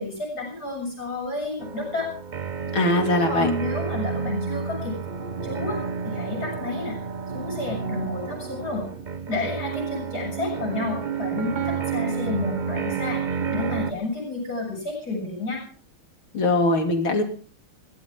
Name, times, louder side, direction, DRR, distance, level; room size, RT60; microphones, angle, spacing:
voice 1, 0.0-2.1 3.3-5.0 5.4-5.8 6.0-6.9 7.3-8.8 9.3-13.2 13.5-15.6, left 3 dB, 45° left, 0 dB, 7.8 m, -30 dB
sound 1, 1.6-13.9, right 6 dB, 65° right, 0.4 m, -30 dB
voice 2, 2.7-3.5 16.3-17.2, left 2 dB, 70° left, 4 dB, 3.5 m, -21 dB
22.0 x 17.5 x 3.7 m, 0.42 s
omnidirectional pair, 2.3 m